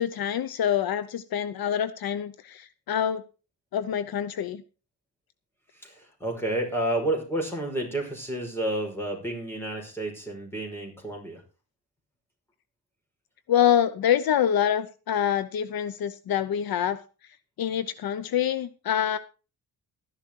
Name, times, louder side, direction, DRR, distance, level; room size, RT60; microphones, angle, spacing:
voice 1, 0.0-3.2 3.7-4.6 13.5-17.0 17.6-19.2, left 9 dB, 65° left, 14 dB, 0.9 m, -26 dB
voice 2, 5.8-11.4, right 1 dB, 5° left, 0 dB, 5.3 m, -30 dB
13.0 x 11.0 x 4.6 m, 0.33 s
wide cardioid pair, 160°, 38 cm